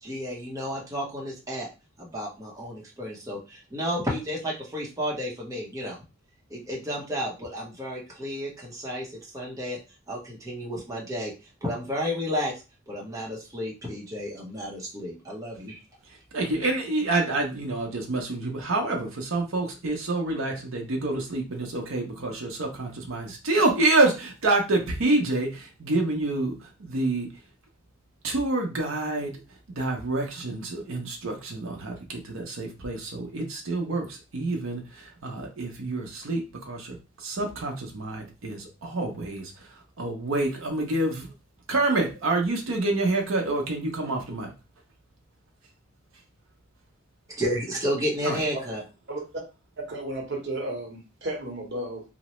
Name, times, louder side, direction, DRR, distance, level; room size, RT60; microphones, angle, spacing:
voice 1, 0.0-1.7 2.0-6.0 6.5-9.8 10.1-11.3 11.6-15.8 16.6-16.7 47.3-48.8, equal, 15° right, -3 dB, 0.7 m, -32 dB
voice 2, 16.3-27.3 28.2-29.3 29.7-37.0 37.2-39.5 40.0-41.3 41.7-44.5 48.2-48.4, right 2 dB, 75° right, 1 dB, 0.6 m, -27 dB
voice 3, 49.9-52.0, right 1 dB, 60° right, 0 dB, 0.9 m, -33 dB
2.8 x 2.0 x 3.0 m, 0.29 s
head